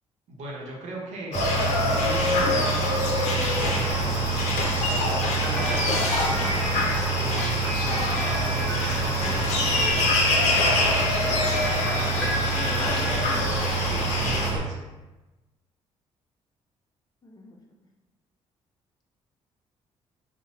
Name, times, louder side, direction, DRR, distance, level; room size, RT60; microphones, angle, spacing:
voice 1, 0.3-4.4 4.9-6.6 7.2-9.8 13.8-14.8, right 1 dB, 90° right, -3 dB, 0.7 m, -39 dB
sound 1, 1.3-14.5, left 3 dB, 85° left, 0.5 m, -26 dB
sound 2, 1.3-14.6, right 4 dB, 35° right, 0.4 m, -28 dB
sound 3, 5.5-13.8, equal, 5° right, 0.9 m, -33 dB
voice 2, 12.5-13.6 17.2-17.6, left 2 dB, 35° left, 0 dB, 0.5 m, -41 dB
2.7 x 2.1 x 2.9 m, 1.1 s
cardioid pair, 90°, 12 cm